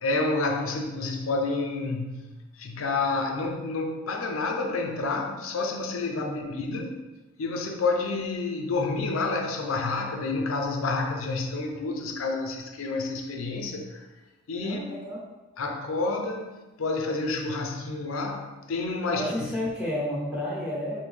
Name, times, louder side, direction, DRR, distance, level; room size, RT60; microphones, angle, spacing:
voice 1, 0.0-7.0 7.4-14.1 14.5-14.8 15.6-19.5, left 3 dB, 85° left, 3 dB, 0.5 m, -29 dB
voice 2, 6.1-6.4 14.6-15.2 19.1-21.0, left 1 dB, 5° right, -7 dB, 1.4 m, -31 dB
5.2 x 2.7 x 3.2 m, 1.1 s
head